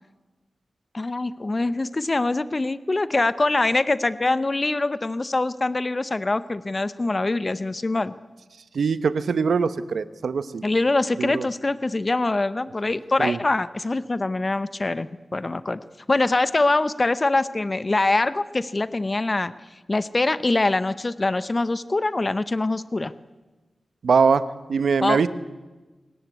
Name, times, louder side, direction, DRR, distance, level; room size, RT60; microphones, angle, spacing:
voice 1, 0.9-8.1 10.6-15.8 16.1-19.5 19.9-23.1 25.0-25.2, left 2 dB, 30° left, 15 dB, 0.8 m, -24 dB
voice 2, 8.7-10.6 11.2-11.5 13.2-13.4 24.0-24.4 24.7-25.3, right 5 dB, 85° right, 14 dB, 1.1 m, -22 dB
24.0 x 19.5 x 8.3 m, 1.2 s
wide cardioid pair, 130°, 0 cm